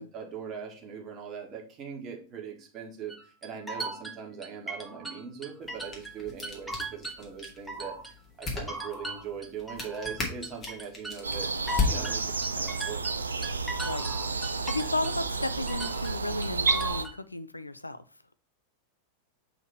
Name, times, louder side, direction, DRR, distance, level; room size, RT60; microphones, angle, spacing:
voice 1, 0.0-8.0 8.4-11.5 11.9-13.2, right 6 dB, 30° right, 1 dB, 1.9 m, -41 dB
sound 1, 3.1-6.2 6.4-8.1 8.4-15.2 15.4-17.2, right 2 dB, ahead, 1.2 m, -38 dB
sound 2, 5.6-12.7, left 4 dB, 25° left, 2.3 m, -36 dB
sound 3, 11.2-17.1, right 4 dB, 75° right, 0.4 m, -31 dB
voice 2, 13.8-18.0, left 2 dB, 85° left, 13 dB, 0.5 m, -34 dB
7.0 x 4.2 x 4.3 m, 0.38 s
figure-of-eight pair, 90°, 0 cm